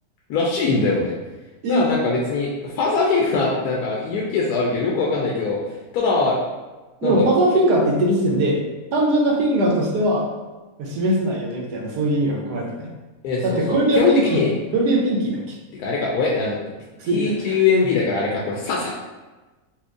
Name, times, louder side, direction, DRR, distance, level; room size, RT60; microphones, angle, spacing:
voice 1, 0.3-1.1 1.7-6.4 7.0-7.3 13.2-14.5 15.8-16.6 17.0-18.9, left 4 dB, 75° left, -4 dB, 1.1 m, -22 dB
voice 2, 7.0-8.6 8.9-10.3 10.8-12.9 13.4-14.4 14.7-15.6 17.0-17.6, right 1 dB, 90° right, -1 dB, 1.3 m, -20 dB
4.3 x 2.3 x 2.5 m, 1.2 s
omnidirectional pair, 1.7 m